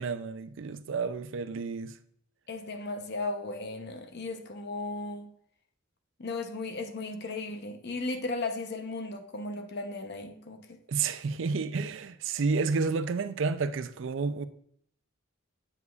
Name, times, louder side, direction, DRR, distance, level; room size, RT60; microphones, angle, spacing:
voice 1, 0.0-2.0 10.9-14.4, right 4 dB, 65° right, 0.4 m, -30 dB
voice 2, 2.5-5.3 6.2-10.8, left 3 dB, 55° left, 0.8 m, -36 dB
8.1 x 7.1 x 2.4 m
head